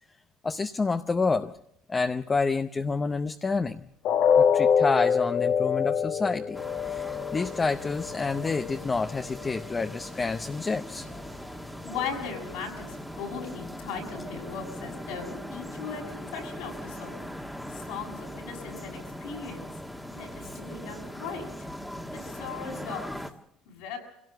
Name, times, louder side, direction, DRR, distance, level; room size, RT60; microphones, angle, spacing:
voice 1, 0.4-1.5 1.9-3.8 4.4-11.1 20.5-20.6, left 4 dB, 20° left, 8 dB, 0.7 m, -28 dB
sound 1, 4.0-10.0 10.4-10.6 11.1-11.2, left 7 dB, 65° left, 1.3 m, -26 dB
sound 2, 6.5-23.3, equal, 5° left, 1.5 m, -40 dB
voice 2, 11.8-17.3 17.7-19.7 20.1-21.7 22.1-23.3 23.7-24.0, left 6 dB, 85° left, 1 dB, 6.6 m, -38 dB
25.0 x 17.5 x 6.6 m, 0.78 s
cardioid pair, 115°, 0 cm